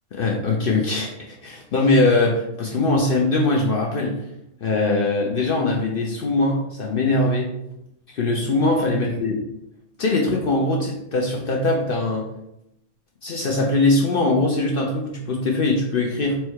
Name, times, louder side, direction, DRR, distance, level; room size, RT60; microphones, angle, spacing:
voice 1, 0.1-4.2 4.6-7.5 8.1-9.4 10.0-12.3 13.2-16.4, left 2 dB, 65° left, 0 dB, 0.5 m, -21 dB
4.5 x 2.2 x 4.5 m, 0.82 s
omnidirectional pair, 1.6 m